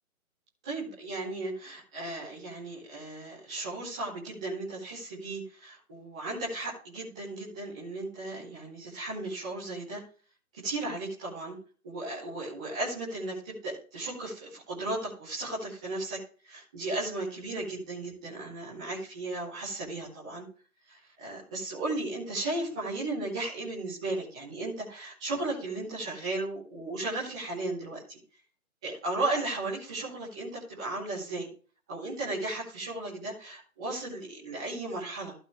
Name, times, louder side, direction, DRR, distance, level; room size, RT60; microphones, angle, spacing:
voice 1, 0.6-10.0 10.6-11.6 11.8-20.4 20.9-28.2 28.8-31.5 31.9-35.3, right 2 dB, 5° right, -8 dB, 0.7 m, -35 dB
14.5 x 5.3 x 3.1 m, 0.39 s
figure-of-eight pair, 150°, 43 cm